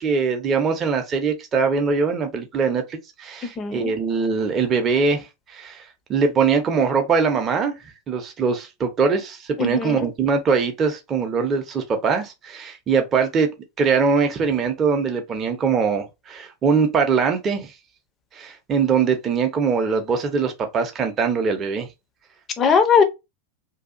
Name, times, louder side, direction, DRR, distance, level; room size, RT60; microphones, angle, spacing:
voice 1, 0.0-5.2 5.5-5.8 6.1-7.7 8.1-13.5 13.8-17.7 18.3-21.9, right 5 dB, 25° right, 0.6 m, -22 dB
voice 2, 3.4-3.9 9.6-10.1 22.6-23.0, left 6 dB, 25° left, 0.6 m, -19 dB
2.7 x 2.3 x 2.4 m
figure-of-eight pair, 90°, 0 cm